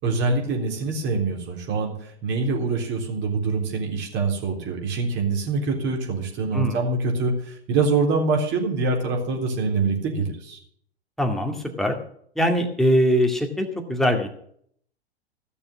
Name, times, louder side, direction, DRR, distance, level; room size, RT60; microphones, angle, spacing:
voice 1, 0.0-10.6, right 3 dB, 35° right, 0 dB, 3.7 m, -25 dB
voice 2, 11.2-12.0 12.4-14.3, equal, ahead, 3 dB, 2.1 m, -22 dB
15.5 x 7.1 x 7.3 m, 0.64 s
figure-of-eight pair, 95°, 32 cm